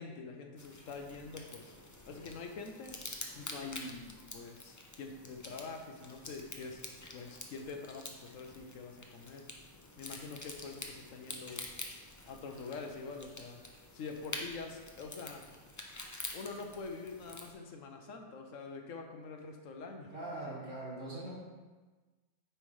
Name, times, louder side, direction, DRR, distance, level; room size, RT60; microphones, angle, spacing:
voice 1, 0.0-1.7 2.1-3.0 3.3-9.5 10.0-11.6 12.3-13.6 13.9-15.4 16.3-20.1, left 4 dB, 75° left, 4 dB, 1.2 m, -45 dB
sound 1, 0.6-17.5, left 2 dB, 20° left, 0.4 m, -48 dB
voice 2, 20.1-21.4, right 2 dB, 65° right, -8 dB, 3.0 m, -41 dB
9.0 x 5.6 x 3.2 m, 1.3 s
omnidirectional pair, 1.4 m